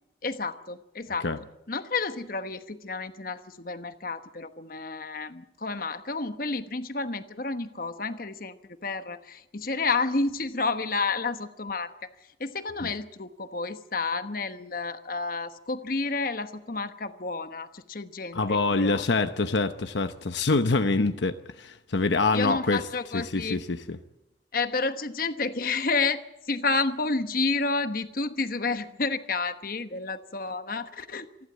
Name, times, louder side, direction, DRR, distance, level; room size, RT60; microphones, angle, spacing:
voice 1, 0.2-1.3 1.7-8.6 8.8-11.9 12.4-19.0 22.3-23.6 24.5-31.3, left 3 dB, 50° left, 1.1 m, -30 dB
voice 2, 18.3-22.8 23.1-24.0, left 3 dB, 75° left, 0.9 m, -25 dB
27.0 x 11.5 x 9.2 m
head